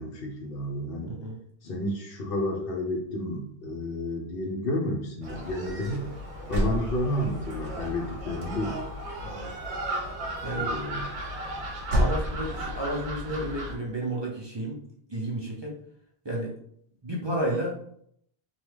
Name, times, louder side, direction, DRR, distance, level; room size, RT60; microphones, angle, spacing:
voice 1, 0.0-1.2 1.6-6.0 6.5-8.8 10.6-11.1, left 1 dB, 60° left, 0 dB, 0.8 m, -31 dB
voice 2, 1.1-1.4 6.0-6.1 9.2-9.5 10.4-10.7 12.0-14.8 15.1-15.7 16.2-16.5 17.0-17.8, right 1 dB, 35° right, -3 dB, 0.4 m, -32 dB
Gull seagull, 5.2-13.8, equal, 90° right, 1.0 m, -32 dB
3.0 x 2.2 x 3.3 m, 0.68 s
omnidirectional pair, 1.1 m